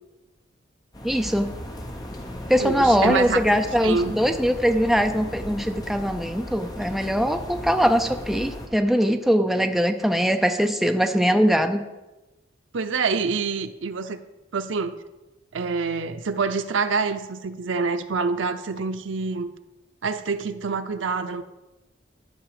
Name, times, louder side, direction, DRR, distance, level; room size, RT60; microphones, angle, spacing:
sound 1, 0.9-8.7, left 1 dB, 20° left, 1.1 m, -36 dB
voice 1, 1.0-1.5 2.5-11.8, equal, ahead, 0.4 m, -21 dB
voice 2, 2.6-3.4 3.8-4.2 12.7-14.2 14.5-15.0 15.5-19.5 20.0-21.4, right 4 dB, 85° right, 0.6 m, -26 dB
12.0 x 6.0 x 4.9 m
head